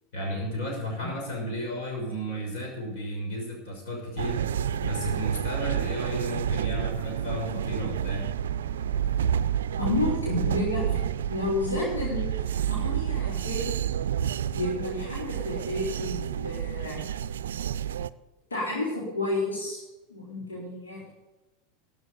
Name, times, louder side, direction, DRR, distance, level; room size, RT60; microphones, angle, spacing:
voice 1, 0.1-4.4 4.8-8.3, equal, 55° left, 0 dB, 6.1 m, -33 dB
sound 1, 4.2-18.1, right 9 dB, 65° right, 0.4 m, -29 dB
voice 2, 9.8-11.0 11.3-13.7 14.5-17.0 18.5-19.8 20.1-21.1, left 2 dB, 80° left, -6 dB, 4.3 m, -31 dB
13.0 x 7.8 x 8.7 m, 1.1 s
figure-of-eight pair, 85°, 0 cm